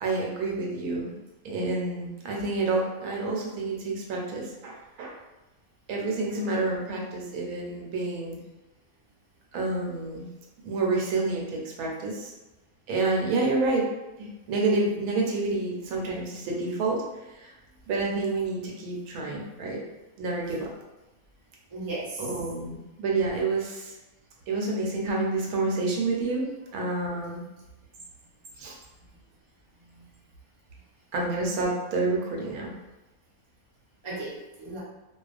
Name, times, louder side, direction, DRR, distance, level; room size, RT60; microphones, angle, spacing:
voice 1, 0.0-1.1 1.4-5.2 5.9-8.4 9.5-10.3 10.6-12.3 12.9-13.9 14.2-17.0 17.2-17.5 17.9-19.8 20.2-20.7 22.2-23.9 24.5-26.4 26.7-27.4 28.6-28.8 31.1-32.7, right 3 dB, 90° right, -2 dB, 1.1 m, -28 dB
voice 2, 21.7-22.3 27.0-27.1 29.8-30.0 34.0-34.8, right 2 dB, 35° right, -7 dB, 0.5 m, -36 dB
2.3 x 2.3 x 2.4 m, 1.0 s
omnidirectional pair, 1.5 m